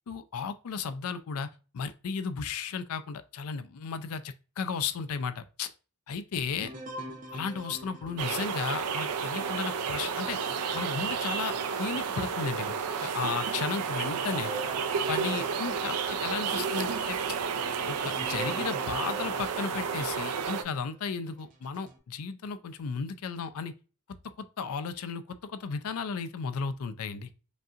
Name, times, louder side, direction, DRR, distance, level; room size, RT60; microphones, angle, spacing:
voice 1, 0.1-1.5 1.7-5.7 6.1-6.7 7.3-10.4 10.7-12.7 13.0-14.5 15.1-17.2 17.9-23.7 24.4-27.3, left 5 dB, 70° left, 0.4 m, -34 dB
sound 1, 6.6-12.4 12.9-13.0 13.6-20.8 21.4-22.0, right 2 dB, 35° right, 0.7 m, -45 dB
sound 2, 8.2-20.6, right 6 dB, 90° right, 0.5 m, -31 dB
5.2 x 2.7 x 2.4 m
head